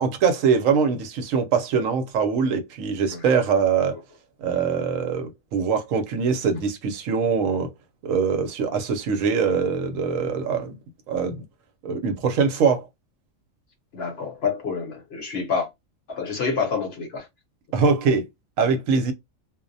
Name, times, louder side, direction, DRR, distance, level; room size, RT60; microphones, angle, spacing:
voice 1, 0.0-4.0 4.4-7.7 8.0-10.7 11.1-11.4 11.8-12.9 17.7-18.2 18.6-19.1, right 5 dB, 75° right, 0.9 m, -23 dB
voice 2, 13.9-15.7 16.1-17.3 17.8-17.9, left 5 dB, 55° left, 0.8 m, -28 dB
2.4 x 2.0 x 2.5 m
omnidirectional pair, 1.4 m